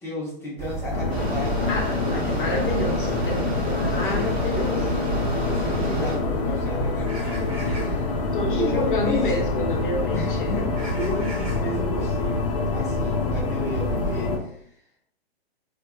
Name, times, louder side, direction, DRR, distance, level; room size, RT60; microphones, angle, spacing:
voice 1, 0.0-1.7 2.0-2.2 2.5-2.8 4.0-4.3 5.4-8.1 8.4-9.3 10.1-10.7 11.0-12.4 12.7-14.7, left 1 dB, 10° left, -7 dB, 0.9 m, -33 dB
sound 1, 0.6-14.4, right 2 dB, 20° right, 1.1 m, -32 dB
sound 2, 0.9-14.4, left 4 dB, 35° left, 0.4 m, -27 dB
Mechanisms, 1.1-6.2, equal, 75° right, 0.9 m, -30 dB
voice 2, 1.7-5.0 8.3-10.5, left 2 dB, 55° left, 0 dB, 0.9 m, -28 dB
2.5 x 2.5 x 2.3 m, 0.67 s
figure-of-eight pair, 120°, 32 cm